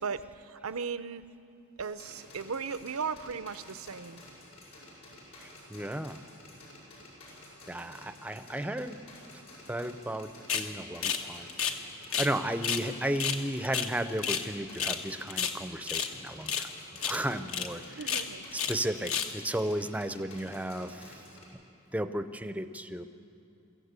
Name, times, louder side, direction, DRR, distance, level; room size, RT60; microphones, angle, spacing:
voice 1, 0.0-1.3 1.8-4.2 18.0-18.4, right 5 dB, 75° right, 13 dB, 0.6 m, -36 dB
sound 1, 1.8-21.5, left 1 dB, 85° left, 6.6 m, -52 dB
voice 2, 5.4-6.2 7.7-9.0 9.7-11.5 12.2-16.7 17.0-18.2 18.5-21.2 21.9-23.0, right 1 dB, 5° right, 10 dB, 0.5 m, -34 dB
sound 2, 10.5-10.7 11.0-11.2 11.5-12.3 12.6-12.9 13.2-14.5 14.8-15.0 15.3-16.1 16.5-16.7 17.0-17.2 17.5-17.7 18.0-18.8 19.0-19.4, left 7 dB, 70° left, 1.2 m, -31 dB
23.0 x 14.5 x 8.2 m, 2.6 s
head